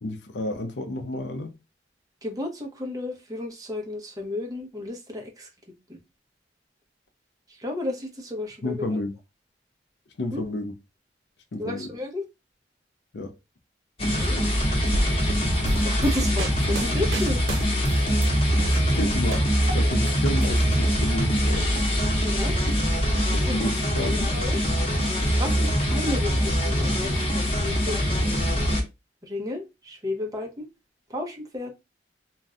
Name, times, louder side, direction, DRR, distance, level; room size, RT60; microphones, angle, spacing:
voice 1, 0.0-1.5 8.6-9.2 10.2-10.7 11.5-11.9 13.1-13.3 18.6-21.7 22.6-22.8 23.3-24.3, left 1 dB, 70° left, 0.5 m, -31 dB
voice 2, 2.2-5.5 5.9-6.0 7.5-9.0 10.3-10.4 11.6-12.2 14.2-14.4 15.8-17.5 22.2-22.5 23.5-24.6 25.4-28.4 29.2-30.7 31.1-31.7, left 1 dB, 20° right, 0.7 m, -32 dB
sound 1, 14.0-28.8, equal, 30° left, 0.8 m, -23 dB
sound 2, 14.9-18.3 18.6-20.1 20.4-21.3, right 1 dB, 90° right, 0.6 m, -32 dB
2.6 x 2.2 x 3.5 m
head